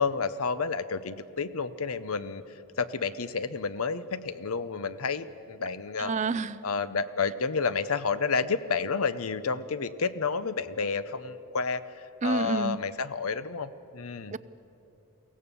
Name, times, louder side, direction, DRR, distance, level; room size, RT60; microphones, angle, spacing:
voice 1, 0.0-2.4 2.8-6.1 6.6-14.3, left 5 dB, 80° left, 0.8 m, -30 dB
voice 2, 6.0-6.6 12.2-12.8 14.3-14.4, right 4 dB, 35° right, 0.4 m, -29 dB
23.5 x 17.0 x 6.9 m
head